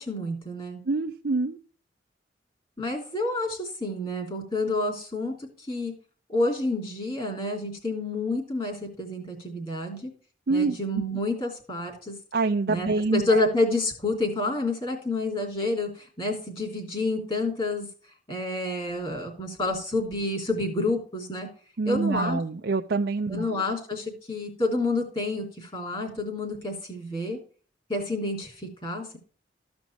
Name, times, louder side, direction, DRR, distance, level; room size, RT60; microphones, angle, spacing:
voice 1, 0.0-0.8 2.8-5.9 6.3-10.1 10.5-12.1 12.7-17.9 18.3-21.5 21.8-22.4 23.3-27.4 27.9-29.2, left 2 dB, 30° left, 1 dB, 3.3 m, -29 dB
voice 2, 0.9-1.6 10.5-11.0 12.3-13.5 21.8-23.6, right 3 dB, 60° right, 4 dB, 0.5 m, -26 dB
14.5 x 5.2 x 4.6 m, 0.41 s
head